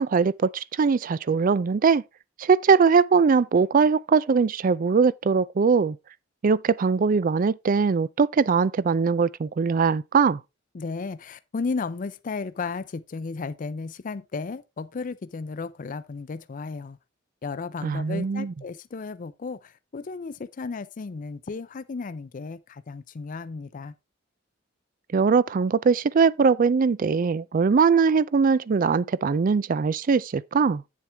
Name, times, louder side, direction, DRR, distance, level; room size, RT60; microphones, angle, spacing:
voice 1, 0.0-2.0 2.4-6.0 6.4-10.4 17.8-18.5 25.1-30.8, right 5 dB, 45° right, 0.4 m, -21 dB
voice 2, 10.7-17.0 17.4-23.9, left 4 dB, 45° left, 0.4 m, -34 dB
8.3 x 7.3 x 3.4 m
head